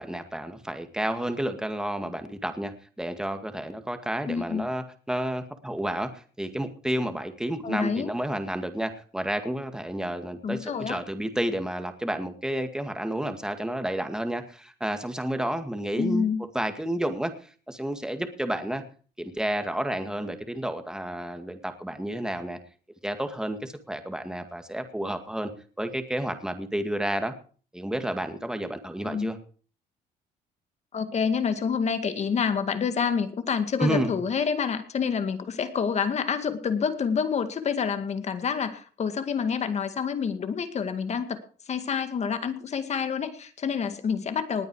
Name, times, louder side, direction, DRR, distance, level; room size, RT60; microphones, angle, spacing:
voice 1, 0.0-16.3 16.5-18.8 19.2-22.6 23.0-25.5 25.8-27.3 27.7-29.4 33.8-34.1, right 1 dB, 5° right, 7 dB, 2.0 m, -31 dB
voice 2, 4.3-4.7 7.6-8.1 10.4-11.0 16.0-16.4 29.0-29.3 30.9-41.4 41.7-44.7, left 6 dB, 40° left, 9 dB, 2.1 m, -28 dB
19.5 x 9.3 x 4.8 m, 0.41 s
cardioid pair, 110°, 17 cm